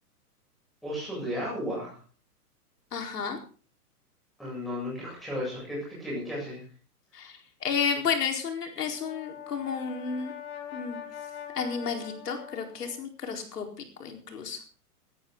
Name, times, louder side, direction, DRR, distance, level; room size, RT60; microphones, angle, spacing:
voice 1, 0.8-2.0 4.4-6.6, equal, ahead, -6 dB, 8.0 m, -34 dB
voice 2, 2.9-3.4 7.1-10.3 10.7-11.0 11.5-13.7 14.0-14.6, left 6 dB, 80° left, 4 dB, 4.5 m, -32 dB
Brass instrument, 8.8-13.0, left 9 dB, 40° left, 4.5 m, -43 dB
19.0 x 14.5 x 4.0 m, 0.38 s
hypercardioid pair, 180°, 47 cm